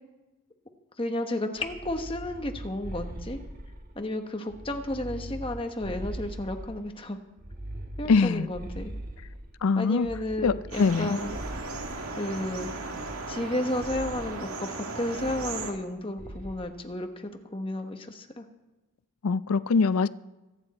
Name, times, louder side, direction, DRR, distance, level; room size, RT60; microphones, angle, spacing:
voice 1, 1.0-3.4 3.9-7.2 8.0-8.9 9.8-11.4 12.2-12.7 13.3-18.4, left 1 dB, 25° left, 1.2 m, -32 dB
sound 1, 1.6-4.0 4.5-6.9 7.4-9.6 10.0-11.9 12.5-13.5 13.8-14.3 15.2-15.9 16.2-16.6, right 1 dB, 40° right, 1.6 m, -41 dB
voice 2, 8.1-8.5 9.6-10.1 10.4-11.2 19.2-20.1, left 4 dB, 85° left, 0.5 m, -23 dB
sound 2, 10.7-15.7, right 3 dB, 85° right, 2.2 m, -36 dB
24.5 x 9.9 x 4.3 m
head